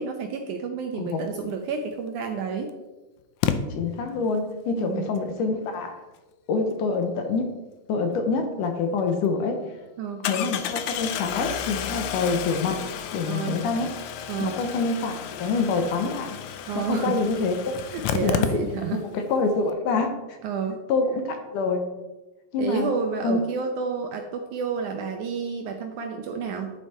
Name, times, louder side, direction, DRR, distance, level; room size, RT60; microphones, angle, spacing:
voice 1, 0.0-2.7 4.8-5.1 10.0-10.3 13.3-13.6 14.3-14.6 16.7-17.2 17.9-19.0 20.4-20.8 22.6-26.7, right 5 dB, 75° right, 4 dB, 1.9 m, -30 dB
voice 2, 1.0-1.3 3.7-6.0 6.5-7.6 7.9-9.8 10.3-12.8 13.1-13.9 14.4-16.4 16.8-17.7 18.2-18.6 19.0-20.4 20.9-21.9 22.5-22.9 23.2-23.4, left 4 dB, 70° left, 5 dB, 2.2 m, -26 dB
Engine starting, 1.9-2.0 3.4-3.6 8.6-8.7 9.1-9.2 10.2-19.1 19.3-19.4 19.6-19.7, left 8 dB, 85° left, 1.6 m, -31 dB
11.5 x 7.0 x 4.2 m, 1.1 s
omnidirectional pair, 4.2 m